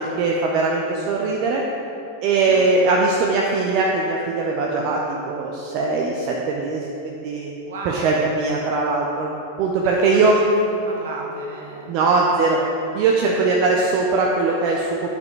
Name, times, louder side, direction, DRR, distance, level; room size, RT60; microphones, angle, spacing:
voice 1, 0.0-1.6 2.2-7.5 7.8-9.3 9.6-10.3 11.9-12.6 12.9-15.1, right 3 dB, 40° right, -1 dB, 0.7 m, -20 dB
voice 2, 7.7-8.2 10.0-11.9, right 4 dB, 60° right, -1 dB, 1.3 m, -33 dB
9.2 x 5.5 x 3.8 m, 2.8 s
figure-of-eight pair, 90°, 0 cm